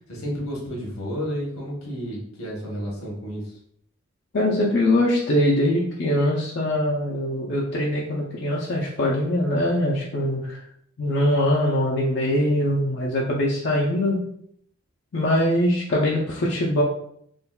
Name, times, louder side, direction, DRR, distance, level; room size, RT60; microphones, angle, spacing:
voice 1, 0.1-3.6, equal, 85° left, -2 dB, 1.0 m, -31 dB
voice 2, 4.3-10.6 11.0-14.2 15.1-16.8, left 1 dB, 55° left, -4 dB, 0.4 m, -22 dB
3.8 x 2.1 x 2.3 m, 0.68 s
head